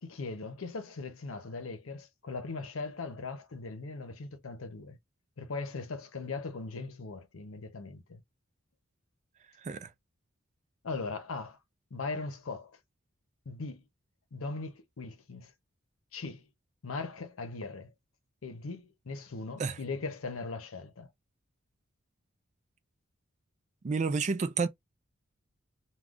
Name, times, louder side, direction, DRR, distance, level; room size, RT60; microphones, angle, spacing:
voice 1, 0.0-5.0 5.4-8.2 10.8-11.6 11.9-12.8 13.5-13.9 14.3-15.5 16.1-16.5 16.8-17.9 18.4-21.1, left 3 dB, 85° left, 0.7 m, -39 dB
voice 2, 9.6-9.9 19.6-19.8 23.8-24.7, right 4 dB, 35° right, 0.4 m, -30 dB
2.4 x 2.3 x 3.5 m
head